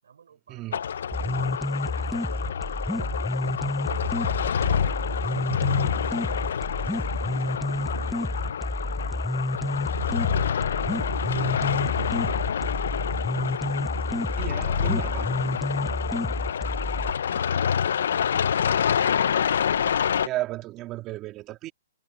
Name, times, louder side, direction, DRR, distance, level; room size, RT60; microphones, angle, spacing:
voice 1, 0.0-5.3 5.7-6.6 7.2-9.5 14.3-16.1 16.6-19.4, right 7 dB, 75° right, 5.3 m, -55 dB
sound 1, 0.7-20.3, left 8 dB, 65° left, 0.7 m, -27 dB
sound 2, 1.1-17.1, left 1 dB, ahead, 0.5 m, -30 dB
voice 2, 14.4-15.3 20.3-21.7, right 15 dB, 20° right, 1.8 m, -34 dB
hypercardioid pair, 160°, 0 cm